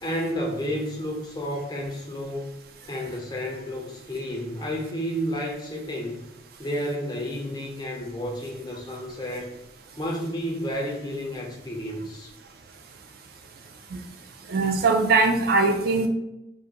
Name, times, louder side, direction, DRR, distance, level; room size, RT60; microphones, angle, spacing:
voice 1, 0.0-2.5 2.9-6.3 6.6-9.5 10.0-12.3, equal, 20° left, 0 dB, 0.4 m, -31 dB
voice 2, 14.5-16.1, right 3 dB, 50° right, 2 dB, 0.3 m, -21 dB
2.3 x 2.2 x 2.8 m, 0.90 s
head